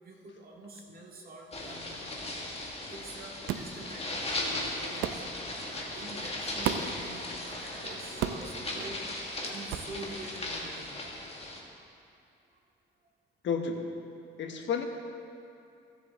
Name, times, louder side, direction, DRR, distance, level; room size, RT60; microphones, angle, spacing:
voice 1, 0.0-2.2 2.7-11.9, right 2 dB, 50° right, -2 dB, 2.1 m, -46 dB
sound 1, 1.5-11.6, left 2 dB, 30° left, 1.7 m, -37 dB
sound 2, 3.5-3.7 5.0-5.2 6.6-7.0 8.2-8.5 9.7-9.9, right 9 dB, 85° right, 0.6 m, -32 dB
voice 2, 13.4-14.0 14.4-14.8, left 6 dB, 70° left, 4 dB, 1.1 m, -31 dB
16.0 x 7.6 x 3.6 m, 2.6 s
cardioid pair, 90°, 20 cm